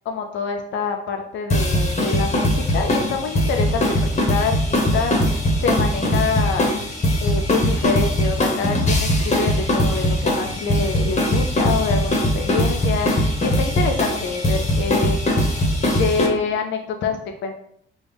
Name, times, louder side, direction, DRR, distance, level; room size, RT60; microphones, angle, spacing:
voice 1, 0.1-3.9 4.3-6.7 7.2-15.2 16.0-17.5, left 5 dB, 70° left, 4 dB, 0.5 m, -26 dB
sound 1, 1.5-16.3, left 1 dB, 35° left, 0.9 m, -21 dB
4.0 x 2.3 x 3.4 m, 0.69 s
cardioid pair, 90°, 20 cm